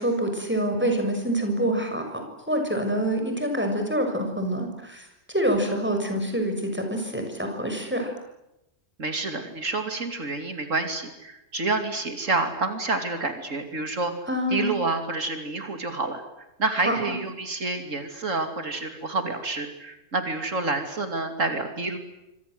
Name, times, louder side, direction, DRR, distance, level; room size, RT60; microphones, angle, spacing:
voice 1, 0.0-8.1 14.3-14.7 16.8-17.0, right 1 dB, 10° right, 4 dB, 6.7 m, -26 dB
voice 2, 9.0-14.1 14.5-22.0, right 3 dB, 75° right, 7 dB, 3.2 m, -28 dB
27.0 x 26.0 x 7.9 m, 0.90 s
omnidirectional pair, 1.3 m